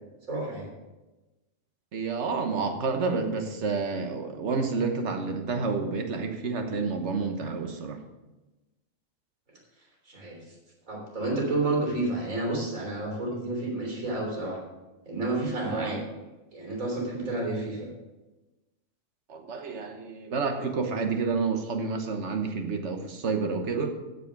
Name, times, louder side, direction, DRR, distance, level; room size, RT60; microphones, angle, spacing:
voice 1, 0.3-0.7 10.1-10.4 10.9-14.6 15.1-16.0 16.5-17.9, right 2 dB, 80° right, -1 dB, 3.9 m, -30 dB
voice 2, 1.9-8.0 15.7-15.9 19.3-23.9, right 4 dB, 60° right, 5 dB, 1.4 m, -29 dB
15.0 x 5.3 x 5.1 m, 1.1 s
omnidirectional pair, 1.4 m